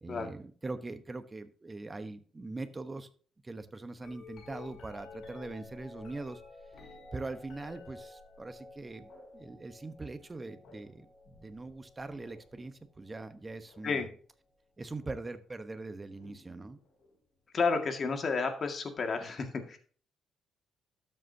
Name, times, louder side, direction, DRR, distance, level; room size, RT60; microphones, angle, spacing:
voice 1, 0.0-3.1 3.4-6.4 7.1-14.1 14.8-16.8, right 3 dB, 20° right, 10 dB, 1.0 m, -42 dB
sound 1, 4.0-14.1 15.0-15.4 16.2-17.2 19.0-19.1, left 3 dB, 70° left, 5.0 m, -52 dB
voice 2, 17.5-19.8, left 4 dB, 45° left, 5 dB, 1.9 m, -31 dB
12.5 x 7.8 x 2.8 m, 0.42 s
cardioid pair, 90°, 0 cm